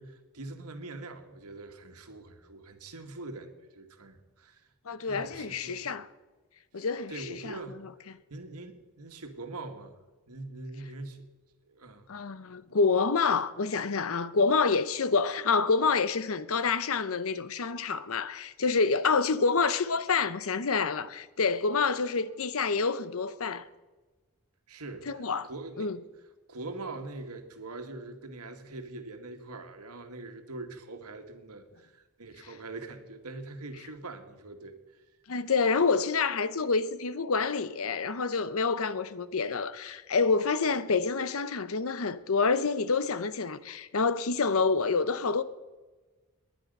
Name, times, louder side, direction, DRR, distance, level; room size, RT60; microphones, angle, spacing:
voice 1, 0.0-4.6 5.0-5.9 6.8-7.8 8.3-10.0 10.3-11.3 11.6-12.1 24.7-25.9 26.5-34.8, right 2 dB, 90° right, 1.7 m, -43 dB
voice 2, 4.9-6.1 6.7-7.6 8.1-8.2 12.1-23.7 25.1-25.5 25.8-26.0 35.3-45.4, left 4 dB, 70° left, 0.8 m, -27 dB
19.0 x 10.5 x 5.4 m
head